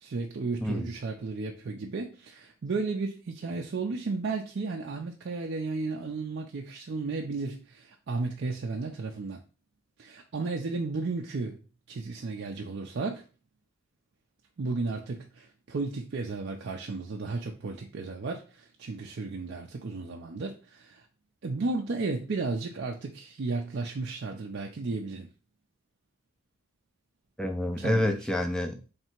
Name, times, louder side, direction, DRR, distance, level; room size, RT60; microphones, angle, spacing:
voice 1, 0.0-9.4 10.0-11.6 11.9-13.2 14.6-21.0 21.4-25.3 27.8-28.2, right 3 dB, 55° right, 0.4 m, -34 dB
voice 2, 27.4-28.8, left 1 dB, 5° left, 0.4 m, -28 dB
3.2 x 2.8 x 4.4 m
head